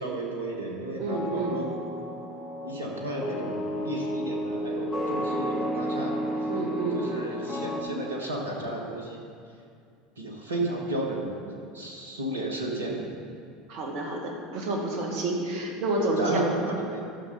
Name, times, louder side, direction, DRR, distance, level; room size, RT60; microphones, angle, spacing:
voice 1, 0.0-1.6 2.6-6.1 6.9-9.2 10.2-13.1 16.0-17.0, right 1 dB, 85° right, -1 dB, 1.5 m, -33 dB
voice 2, 1.0-1.6 6.5-7.0 13.7-16.7, right 2 dB, 60° right, 1 dB, 1.9 m, -29 dB
sound 1, 1.1-7.8, equal, 25° left, 1.9 m, -32 dB
12.0 x 6.6 x 5.4 m, 2.3 s
hypercardioid pair, 75°, 0 cm